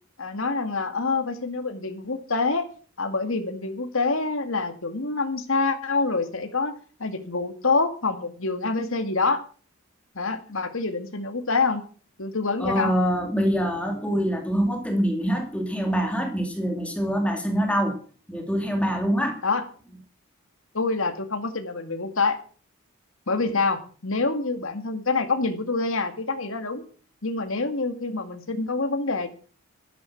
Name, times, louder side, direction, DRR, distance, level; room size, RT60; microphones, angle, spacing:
voice 1, 0.2-2.7 3.0-6.7 7.0-9.4 10.2-11.8 12.2-12.9 19.4-19.6 20.7-22.4 23.3-26.8 27.2-29.3, left 3 dB, 65° left, 7 dB, 2.1 m, -26 dB
voice 2, 12.6-18.0 18.3-19.4, equal, 5° left, 4 dB, 2.3 m, -25 dB
13.0 x 10.5 x 5.8 m, 0.40 s
head